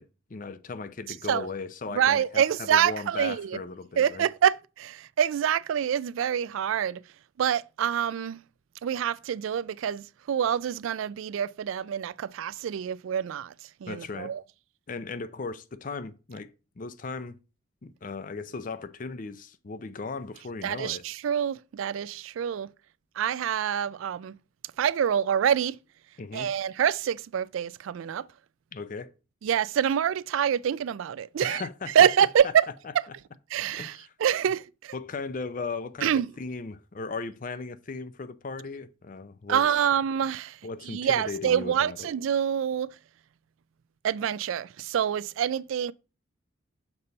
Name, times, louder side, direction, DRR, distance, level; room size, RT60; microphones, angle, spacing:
voice 1, 0.0-4.3 13.9-14.3 14.9-16.5 16.8-17.4 17.8-21.0 26.2-26.5 28.7-29.1 31.4-31.9 33.8-34.1 34.9-39.9 40.6-42.1, left 4 dB, 40° left, 0.5 m, -37 dB
voice 2, 1.9-3.6 4.0-7.0 7.4-8.4 8.8-13.5 13.8-14.4 20.6-22.7 23.2-24.3 24.8-25.8 26.3-28.2 29.4-31.6 31.9-32.7 33.5-34.9 36.0-36.3 39.5-40.6 40.9-42.9 44.0-45.9, right 9 dB, 80° right, 0.3 m, -26 dB
6.8 x 4.1 x 5.3 m
head